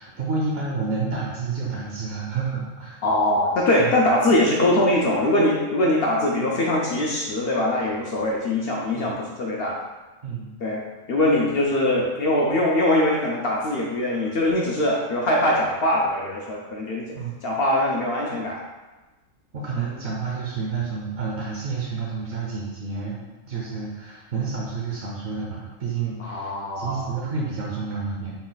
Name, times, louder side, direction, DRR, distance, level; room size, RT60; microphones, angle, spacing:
voice 1, 0.0-3.0 3.8-3.9 9.0-9.1 10.2-10.5 17.1-17.4 19.5-23.2 23.5-28.3, right 4 dB, 60° right, -4 dB, 0.7 m, -29 dB
voice 2, 3.0-9.8 10.6-10.8 11.1-17.0 17.4-18.6 26.2-27.1, left 1 dB, 70° left, -2 dB, 0.6 m, -22 dB
3.9 x 2.3 x 3.9 m, 1.2 s
omnidirectional pair, 1.5 m